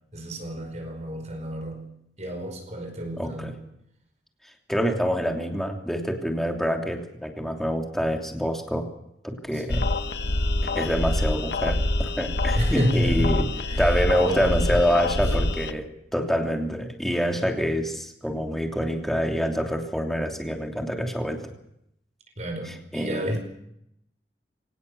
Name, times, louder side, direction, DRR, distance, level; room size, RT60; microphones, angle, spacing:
voice 1, 0.1-1.8 2.2-3.6 9.5-9.9 12.5-13.4 13.7-14.8 15.2-15.3 22.4-23.4, equal, 40° right, 4 dB, 5.1 m, -30 dB
voice 2, 3.2-3.5 4.7-8.9 9.2-9.9 10.6-13.4 13.8-21.5 22.9-23.4, equal, ahead, 2 dB, 3.0 m, -26 dB
sound 1, 9.7-15.7, left 2 dB, 65° left, 1.1 m, -25 dB
24.0 x 18.5 x 7.0 m, 0.77 s
head